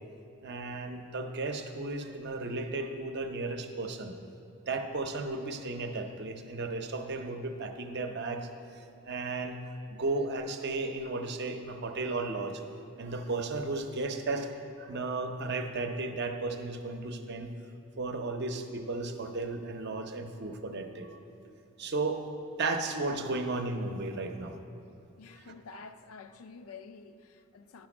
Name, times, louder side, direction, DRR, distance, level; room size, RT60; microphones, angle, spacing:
voice 1, 0.4-4.1 4.7-8.5 8.7-9.6 9.9-12.6 13.0-17.5 18.0-21.1 21.8-22.2 22.6-24.6 25.4-25.8, right 3 dB, 50° right, 0.6 m, -34 dB
voice 2, 25.2-27.9, left 5 dB, 75° left, 0.4 m, -49 dB
10.5 x 5.2 x 6.0 m
head